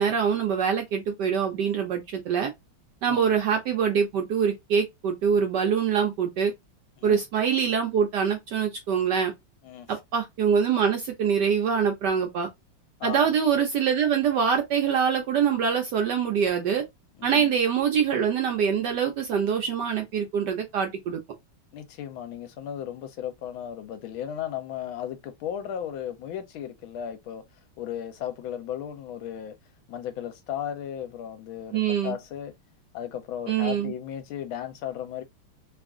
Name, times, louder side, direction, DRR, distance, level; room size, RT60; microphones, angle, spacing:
voice 1, 0.0-2.5 3.0-6.5 7.0-9.3 9.9-12.5 13.0-16.8 17.2-21.2 31.7-32.1 33.5-33.9, right 7 dB, 70° right, 1.0 m, -24 dB
voice 2, 3.1-3.4 7.0-7.2 9.6-10.0 13.0-13.3 17.2-17.5 21.7-27.4 27.8-29.6 29.9-32.5 32.9-35.2, left 10 dB, 75° left, 1.3 m, -35 dB
3.4 x 2.4 x 3.5 m
omnidirectional pair, 2.4 m